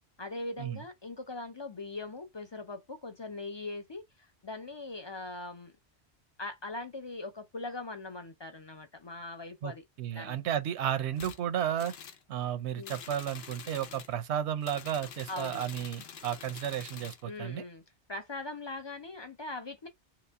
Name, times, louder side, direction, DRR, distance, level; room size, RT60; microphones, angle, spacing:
voice 1, 0.2-5.7 6.4-9.8 10.1-10.4 12.7-13.0 15.3-15.7 17.2-17.8 18.1-19.9, left 2 dB, 45° left, 0.3 m, -41 dB
voice 2, 10.0-11.9 12.3-17.6, right 10 dB, 85° right, 0.9 m, -33 dB
sound 1, 11.2-11.4 11.8-12.2 12.8-14.1 14.6-17.2, left 7 dB, 70° left, 0.9 m, -47 dB
3.1 x 2.9 x 3.3 m
omnidirectional pair, 1.1 m